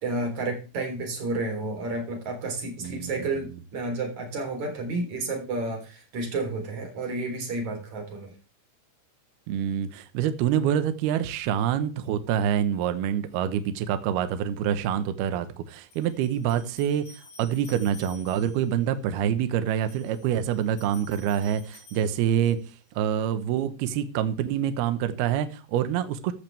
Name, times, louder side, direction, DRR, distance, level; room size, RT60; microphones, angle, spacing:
voice 1, 0.0-8.3, right 2 dB, 40° right, 3 dB, 4.4 m, -31 dB
voice 2, 2.8-3.5 9.5-22.6 23.0-26.3, right 9 dB, 75° right, 11 dB, 2.4 m, -26 dB
sound 1, 15.9-18.7 19.7-22.7, left 2 dB, 50° left, 8.6 m, -51 dB
14.0 x 12.0 x 3.4 m, 0.33 s
omnidirectional pair, 5.8 m